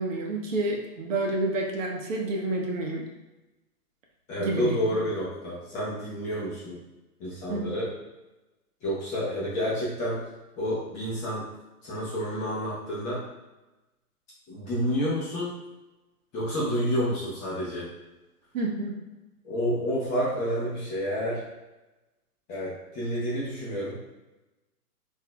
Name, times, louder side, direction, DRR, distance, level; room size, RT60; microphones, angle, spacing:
voice 1, 0.0-3.0 4.4-5.0 7.5-7.7 18.5-19.0, right 2 dB, 55° right, 1 dB, 0.8 m, -29 dB
voice 2, 4.3-6.8 7.2-7.9 8.8-10.2 10.6-11.4 11.8-13.2 14.5-15.5 16.3-17.9 19.4-21.4 22.5-24.0, equal, 15° left, -8 dB, 0.7 m, -29 dB
3.9 x 2.6 x 2.2 m, 1.1 s
hypercardioid pair, 130°, 47 cm